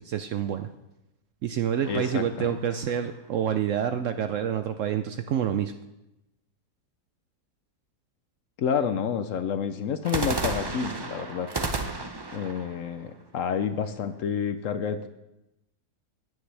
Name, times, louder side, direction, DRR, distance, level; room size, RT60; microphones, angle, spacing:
voice 1, 0.1-0.7 1.4-5.7, right 9 dB, 70° right, 9 dB, 0.7 m, -27 dB
sound 1, 1.8-3.3 10.0-14.0, right 3 dB, 30° right, 0.4 m, -34 dB
voice 2, 1.9-2.6 8.6-11.5 12.3-15.1, left 7 dB, 65° left, 10 dB, 0.9 m, -29 dB
15.0 x 9.4 x 3.3 m, 0.93 s
omnidirectional pair, 1.7 m